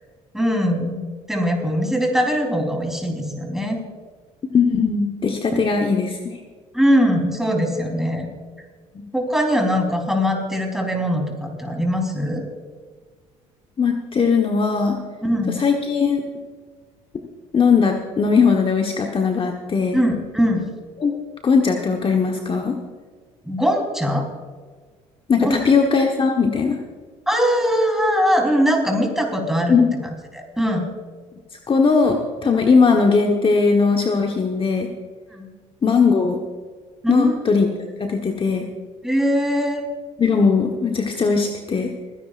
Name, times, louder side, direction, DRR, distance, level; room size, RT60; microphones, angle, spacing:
voice 1, 0.3-1.0 1.3-3.8 6.7-8.3 9.1-12.4 15.2-15.6 19.9-20.7 23.4-24.3 25.4-25.6 27.3-29.8 30.3-30.9 35.3-35.5 37.0-37.4 39.0-39.9, equal, 5° right, 1 dB, 3.8 m, -21 dB
voice 2, 4.5-6.2 8.9-9.0 13.8-15.0 15.6-16.2 17.5-20.0 21.0-21.1 21.4-22.8 25.3-26.8 29.7-29.9 31.7-34.9 35.8-36.4 37.1-37.7 38.0-38.7 40.2-41.9, left 5 dB, 35° left, 2 dB, 1.2 m, -19 dB
30.0 x 10.0 x 2.5 m, 1.5 s
supercardioid pair, 65°, 15 cm